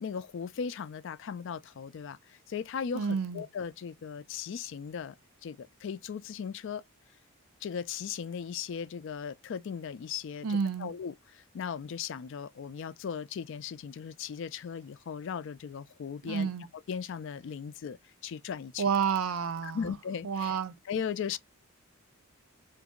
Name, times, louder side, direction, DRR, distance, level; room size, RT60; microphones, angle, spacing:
voice 1, 0.0-5.2 5.4-6.8 7.6-16.5 16.9-18.0 18.2-18.8 19.6-20.6 20.9-21.4, left 7 dB, 55° left, 0.3 m, -37 dB
voice 2, 2.9-3.4 10.4-10.9 16.2-16.7 18.8-19.9 20.2-20.8, right 6 dB, 80° right, 0.5 m, -30 dB
2.9 x 2.6 x 3.6 m
head